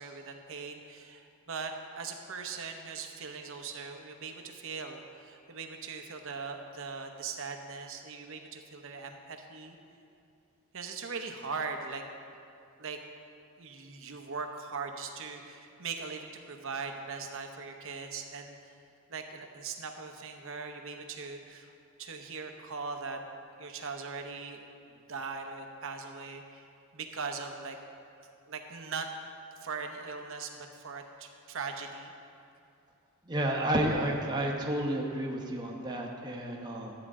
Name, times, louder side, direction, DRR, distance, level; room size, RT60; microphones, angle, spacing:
voice 1, 0.0-9.8 10.7-12.0 12.8-13.0 13.6-18.8 19.1-21.7 22.0-23.2 23.6-26.7 26.9-27.8 28.5-29.1 29.6-32.1, right 5 dB, 65° right, 4 dB, 0.9 m, -40 dB
voice 2, 33.3-36.9, right 1 dB, 20° right, 0 dB, 1.0 m, -31 dB
12.5 x 8.7 x 3.7 m, 2.6 s
head